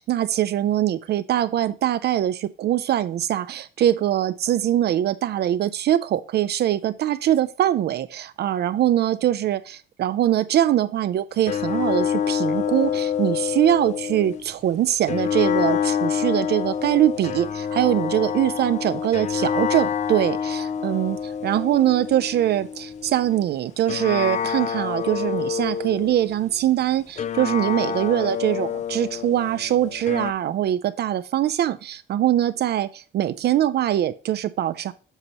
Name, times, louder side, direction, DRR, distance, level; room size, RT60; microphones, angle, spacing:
voice 1, 0.0-21.2 21.4-34.9, right 12 dB, 55° right, 13 dB, 0.4 m, -22 dB
sound 1, 11.5-14.5 15.1-23.4 23.9-26.4 27.2-30.3, left 8 dB, 35° left, 0.4 m, -27 dB
8.1 x 5.5 x 2.9 m, 0.37 s
cardioid pair, 155°, 20 cm